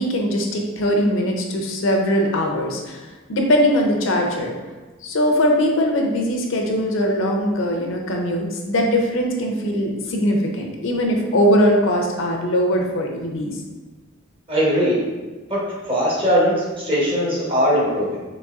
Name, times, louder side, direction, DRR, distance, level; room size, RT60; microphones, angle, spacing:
voice 1, 0.0-4.5 5.0-13.5, equal, 75° left, 1 dB, 0.6 m, -21 dB
voice 2, 14.5-15.0 15.5-15.6 15.9-18.2, equal, 30° right, -5 dB, 1.0 m, -20 dB
4.0 x 3.0 x 2.4 m, 1.3 s
head